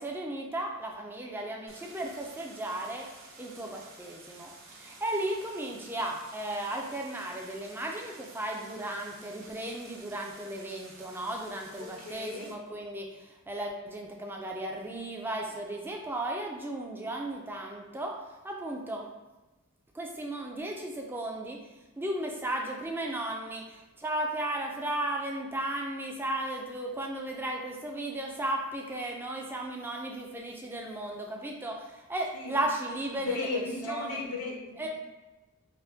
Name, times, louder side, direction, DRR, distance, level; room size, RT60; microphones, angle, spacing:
voice 1, 0.0-3.1 3.4-18.1 18.4-19.1 19.9-21.6 22.0-33.5 33.8-34.2 34.8-34.9, right 1 dB, 10° right, 0 dB, 0.3 m, -35 dB
Stream, 1.7-12.5, right 3 dB, 65° right, 0.6 m, -52 dB
voice 2, 11.8-12.5 32.3-32.6 33.1-34.9, left 3 dB, 85° left, -1 dB, 0.6 m, -36 dB
4.3 x 2.1 x 2.7 m, 1.1 s
head